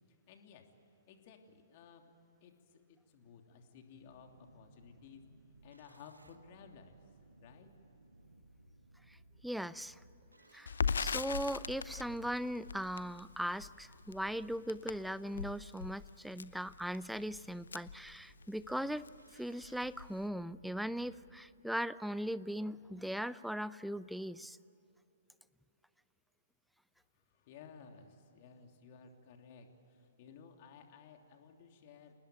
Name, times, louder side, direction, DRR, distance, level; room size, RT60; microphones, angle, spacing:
voice 1, 0.3-0.6 1.1-2.1 2.4-5.2 5.6-6.9 7.4-7.7 27.1-32.1, left 6 dB, 40° left, 4 dB, 3.0 m, -57 dB
sound 1, 3.9-21.4, right 1 dB, 85° right, 1.8 m, -62 dB
voice 2, 9.4-10.0 10.5-24.6, equal, ahead, 17 dB, 0.5 m, -39 dB
Crackle, 10.7-18.7 19.1-19.2 19.5-20.2, left 6 dB, 65° left, 0.8 m, -40 dB
28.0 x 19.5 x 9.1 m, 2.8 s
figure-of-eight pair, 120°, 0 cm